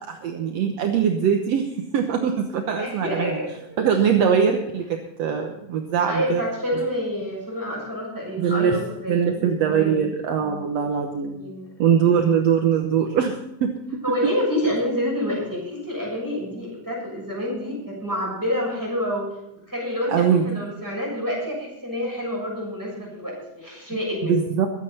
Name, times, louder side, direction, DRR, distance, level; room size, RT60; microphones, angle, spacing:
voice 1, 0.1-3.3 3.8-6.4 8.4-11.4 11.8-14.0 20.1-20.5 24.2-24.7, right 7 dB, 65° right, 3 dB, 2.1 m, -22 dB
voice 2, 2.8-3.8 6.1-9.3 9.6-10.1 10.6-10.8 11.3-11.7 14.0-19.3 19.7-24.3, left 1 dB, 5° right, -3 dB, 7.0 m, -28 dB
23.0 x 8.8 x 4.3 m, 0.86 s
omnidirectional pair, 3.4 m